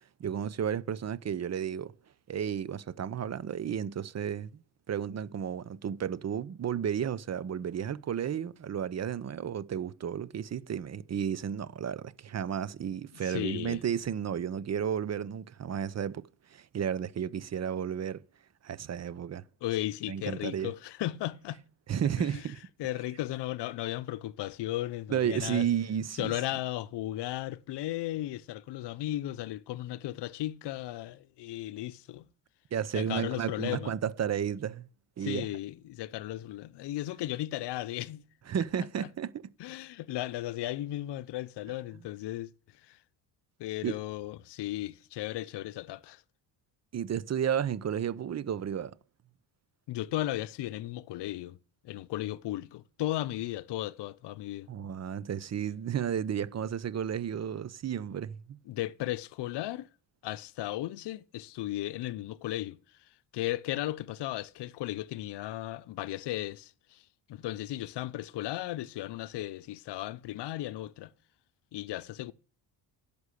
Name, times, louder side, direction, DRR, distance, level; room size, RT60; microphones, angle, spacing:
voice 1, 0.2-1.9 2.3-4.6 4.9-18.2 18.6-19.4 20.1-20.7 21.9-22.6 25.1-26.3 32.7-34.9 35.2-35.5 38.5-39.4 43.8-44.0 46.9-49.0 54.7-58.6, right 8 dB, 35° right, 0.6 m, -32 dB
voice 2, 13.2-13.8 19.6-21.6 22.2-22.4 22.8-25.7 26.2-32.3 32.9-33.9 35.2-38.2 39.6-42.5 42.8-43.0 43.6-46.2 49.9-51.6 51.8-54.7 58.7-59.9 60.2-62.8 63.3-67.0 67.3-71.1 71.7-72.3, left 15 dB, 65° left, 0.7 m, -35 dB
11.5 x 6.8 x 8.3 m
cardioid pair, 115°, 44 cm